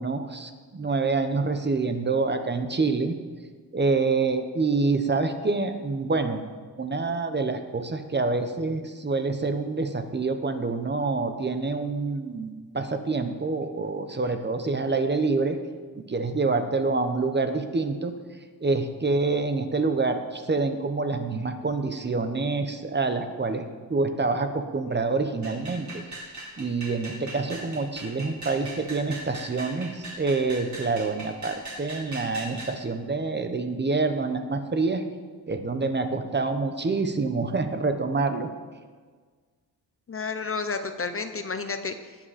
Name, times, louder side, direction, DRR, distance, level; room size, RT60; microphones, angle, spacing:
voice 1, 0.0-3.2 3.7-6.4 6.8-15.6 16.1-18.1 18.6-25.9 26.6-35.0 35.5-38.5, right 3 dB, 25° right, 7 dB, 0.9 m, -27 dB
sound 1, 25.4-32.8, right 1 dB, 45° right, 3.5 m, -40 dB
voice 2, 40.1-42.2, left 4 dB, 35° left, 8 dB, 0.6 m, -31 dB
19.0 x 7.7 x 4.2 m, 1.5 s
wide cardioid pair, 145°, 41 cm